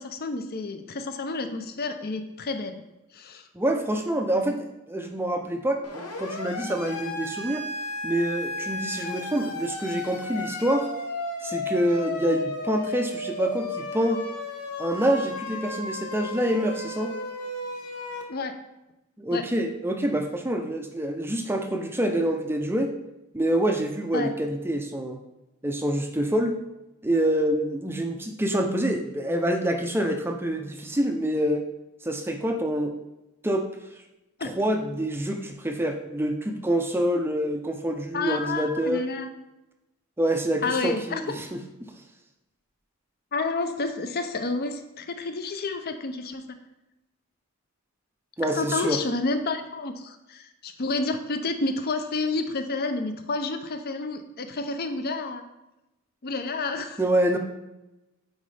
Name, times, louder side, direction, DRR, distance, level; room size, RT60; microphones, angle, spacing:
voice 1, 0.0-2.8 3.1-3.5 18.3-18.6 19.3-19.4 24.1-24.3 34.4-34.5 38.1-39.3 40.6-41.5 43.3-46.4 48.6-55.4 56.2-57.0, left 3 dB, 45° left, 8 dB, 0.6 m, -30 dB
voice 2, 3.5-7.6 8.0-10.9 11.4-14.2 14.8-17.1 19.2-22.9 23.3-25.2 25.6-26.6 27.0-31.7 32.0-33.0 33.4-33.7 34.4-39.0 40.2-41.9 48.4-49.0 57.0-57.4, right 1 dB, 10° right, 4 dB, 0.5 m, -26 dB
Siren, 5.8-18.2, left 2 dB, 80° left, 1.0 m, -34 dB
9.1 x 4.2 x 3.4 m, 0.96 s
head